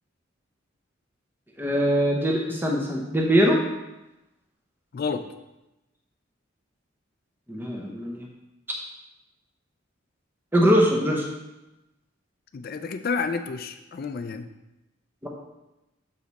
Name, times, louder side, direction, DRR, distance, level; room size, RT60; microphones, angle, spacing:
voice 1, 1.6-3.6 7.5-8.3 10.5-11.3 15.2-15.3, equal, 10° right, -1 dB, 0.7 m, -22 dB
voice 2, 4.9-5.3 12.5-14.5, left 5 dB, 45° left, 8 dB, 0.3 m, -30 dB
6.9 x 5.1 x 4.0 m, 0.98 s
head